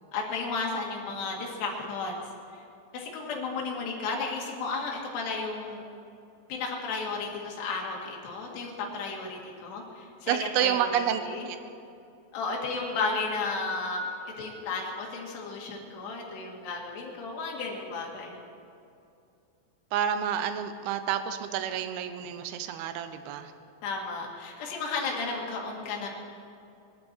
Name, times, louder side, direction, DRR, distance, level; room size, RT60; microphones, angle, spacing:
voice 1, 0.1-2.2 2.9-5.9 6.5-11.5 12.3-14.1 14.4-18.4 23.8-26.1, left 4 dB, 65° left, -1 dB, 3.9 m, -33 dB
voice 2, 10.3-11.6 19.9-23.5, right 9 dB, 80° right, 9 dB, 2.3 m, -29 dB
21.0 x 12.0 x 4.5 m, 2.6 s
omnidirectional pair, 5.3 m